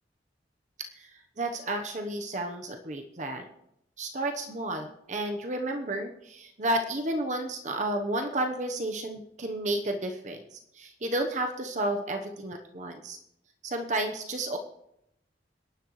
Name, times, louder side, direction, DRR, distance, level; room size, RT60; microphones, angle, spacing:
voice 1, 1.0-3.5 4.0-13.2 13.6-14.6, right 1 dB, 40° right, 5 dB, 1.0 m, -32 dB
25.5 x 11.0 x 3.2 m, 0.81 s
head